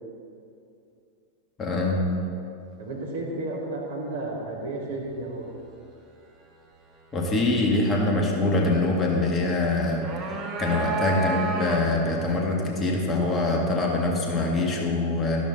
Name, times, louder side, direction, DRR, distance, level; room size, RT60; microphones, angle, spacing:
voice 1, 1.6-2.0 7.1-15.4, left 2 dB, 25° left, 0 dB, 1.9 m, -24 dB
voice 2, 2.8-5.5, right 2 dB, 65° right, -3 dB, 2.7 m, -32 dB
sound 1, 9.8-12.1, right 3 dB, 30° right, 1.6 m, -30 dB
13.0 x 12.0 x 4.1 m, 2.6 s
figure-of-eight pair, 90°, 0 cm